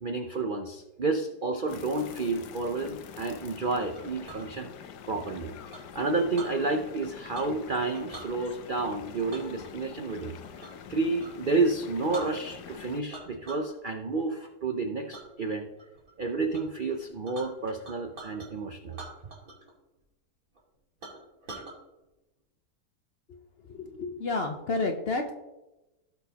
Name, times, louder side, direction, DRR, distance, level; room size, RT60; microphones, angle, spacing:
voice 1, 0.0-4.7 5.1-5.5 5.9-10.3 10.9-15.7 16.2-19.0, right 3 dB, 70° right, 4 dB, 0.4 m, -30 dB
sound 1, 1.7-13.0, left 8 dB, 75° left, 1.3 m, -46 dB
Chink clink, 4.0-4.5 5.7-6.6 7.3-7.7 7.9-8.3 9.3-10.8 11.2-11.4 11.8-11.9 12.1-12.8 13.1-13.7 14.1-14.5 15.1-15.3 15.8-16.1 16.5-16.6 16.9-18.5 18.9-19.7 20.0-20.1 20.6-20.7 21.0-21.8, right 3 dB, 50° right, 2.8 m, -44 dB
voice 2, 23.6-25.3, left 3 dB, 55° left, 3 dB, 0.7 m, -30 dB
16.5 x 6.0 x 2.9 m, 0.99 s
omnidirectional pair, 1.9 m